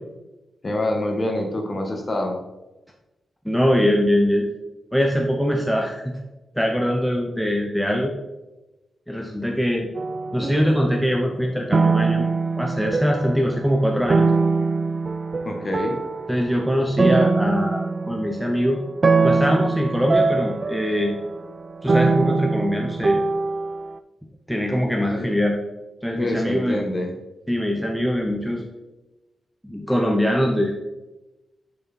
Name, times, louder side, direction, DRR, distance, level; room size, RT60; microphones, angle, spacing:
voice 1, 0.6-2.4 15.4-16.0 25.1-25.4 26.2-27.1, left 1 dB, 30° left, 3 dB, 1.4 m, -26 dB
voice 2, 3.4-4.5 4.9-6.2 6.5-8.1 9.1-9.9 10.3-12.3 12.6-14.2 16.3-18.8 19.2-21.1 21.8-23.2 24.5-25.5 26.0-26.8 27.5-28.6 29.6-30.7, equal, ahead, 1 dB, 0.7 m, -22 dB
sound 1, 9.9-11.4 11.7-13.5 14.1-23.9, right 4 dB, 30° right, 0.3 m, -23 dB
6.8 x 6.4 x 4.3 m, 1.0 s
wide cardioid pair, 145°, 0 cm